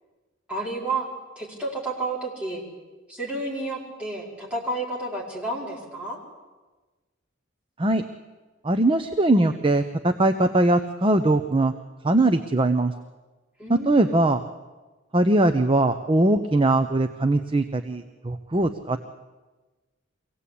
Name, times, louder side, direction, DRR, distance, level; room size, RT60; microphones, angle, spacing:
voice 1, 0.5-1.1 1.4-2.6 3.1-6.2 13.6-14.3, right 2 dB, 5° right, -5 dB, 4.9 m, -31 dB
voice 2, 8.6-11.7 12.0-12.9 13.7-14.4 15.1-19.0, right 2 dB, 25° right, 8 dB, 0.7 m, -21 dB
24.0 x 17.0 x 8.5 m, 1.3 s
head